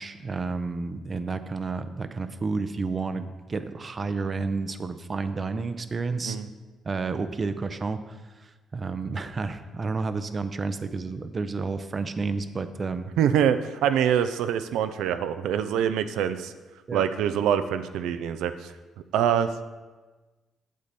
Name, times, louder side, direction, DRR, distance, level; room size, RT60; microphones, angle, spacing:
voice 1, 0.0-6.4 6.8-8.1 8.4-13.0 16.9-17.0, right 4 dB, 35° right, 11 dB, 0.6 m, -31 dB
voice 2, 13.2-16.5 16.9-18.7 19.1-19.6, right 9 dB, 85° right, 10 dB, 0.5 m, -25 dB
8.5 x 7.7 x 4.1 m, 1.2 s
cardioid pair, 90°, 0 cm